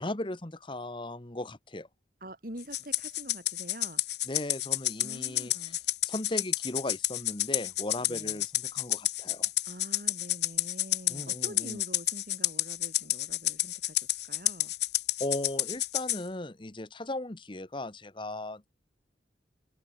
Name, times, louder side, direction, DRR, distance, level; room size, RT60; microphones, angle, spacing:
voice 1, 0.0-1.9 4.3-5.7 6.0-9.5 11.1-11.8 15.2-18.7, left 1 dB, 30° left, 1.2 m, -37 dB
voice 2, 2.2-4.0 5.0-5.8 8.1-8.4 9.7-14.7, right 1 dB, 50° right, 6.5 m, -46 dB
Rattle (instrument), 2.7-16.2, left 15 dB, 70° left, 1.9 m, -30 dB
open air
head